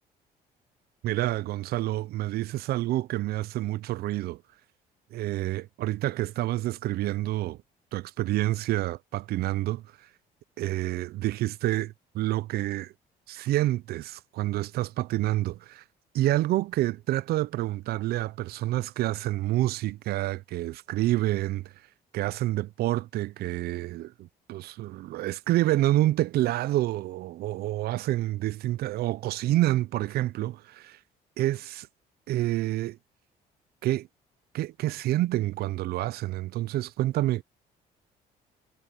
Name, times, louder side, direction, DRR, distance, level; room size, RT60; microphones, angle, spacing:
voice 1, 1.0-4.4 5.1-7.6 7.9-9.8 10.6-12.9 13.3-15.8 16.1-21.7 22.1-31.0 31.4-31.9 32.3-33.0 33.8-34.1 34.5-37.4, right 15 dB, 65° right, 0.5 m, -28 dB
cardioid pair, 110°, 17 cm